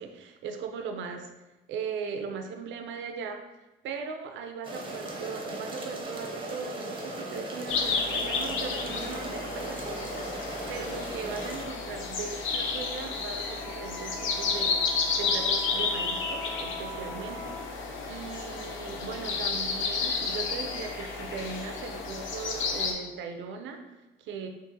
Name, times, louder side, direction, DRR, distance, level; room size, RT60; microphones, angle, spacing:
voice 1, 0.0-1.3 1.7-3.4 3.8-24.5, right 5 dB, 70° right, 5 dB, 0.4 m, -39 dB
sound 1, 4.6-11.7, right 2 dB, 25° right, 0.6 m, -38 dB
sound 2, 7.7-22.9, left 4 dB, 75° left, 0.5 m, -31 dB
Wind instrument woodwind instrument, 13.6-17.7, left 1 dB, ahead, 1.0 m, -42 dB
3.7 x 2.5 x 2.6 m, 1.0 s
cardioid pair, 90°, 20 cm